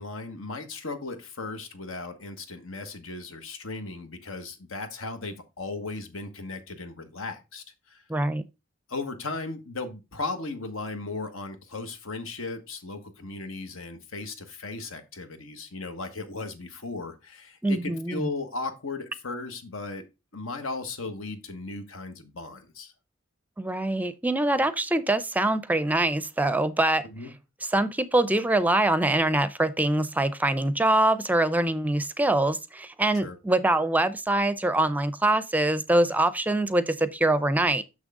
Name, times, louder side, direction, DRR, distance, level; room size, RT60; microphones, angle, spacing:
voice 1, 0.0-8.0 8.9-20.0 20.3-22.9 27.0-27.3 33.1-33.4, left 3 dB, 90° left, 1.4 m, -36 dB
voice 2, 8.1-8.4 17.6-18.3 23.6-27.0 27.7-37.8, right 1 dB, 10° right, 0.4 m, -24 dB
6.5 x 6.4 x 3.6 m
head